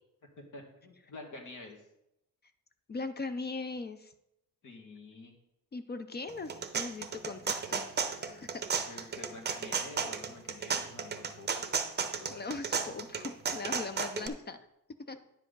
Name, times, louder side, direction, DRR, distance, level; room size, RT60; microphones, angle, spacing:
voice 1, 0.5-1.8 4.6-5.3 8.2-8.5 8.9-11.7 12.0-12.8, left 2 dB, 60° left, 2 dB, 1.9 m, -49 dB
voice 2, 2.9-4.1 5.7-9.1 12.3-14.6 15.1-15.2, left 3 dB, 30° left, 10 dB, 0.4 m, -40 dB
sound 1, 6.3-14.3, right 6 dB, 30° right, 0.6 m, -34 dB
9.9 x 7.6 x 3.8 m, 0.82 s
wide cardioid pair, 170°, 34 cm